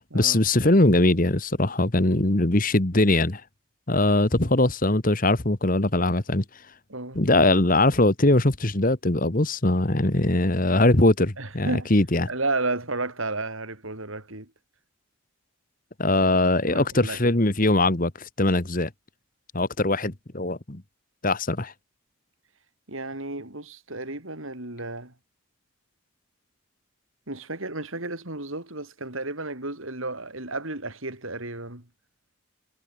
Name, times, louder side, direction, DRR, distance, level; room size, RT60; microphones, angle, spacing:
voice 1, 0.1-3.4 3.9-6.4 7.1-12.3 16.0-18.9 19.5-20.8 21.2-21.7, left 2 dB, 40° left, 1.6 m, -21 dB
voice 2, 6.9-7.2 11.4-11.9 12.3-14.5 16.7-17.2 22.9-25.1 27.3-31.8, right 2 dB, 70° right, 4.4 m, -32 dB
head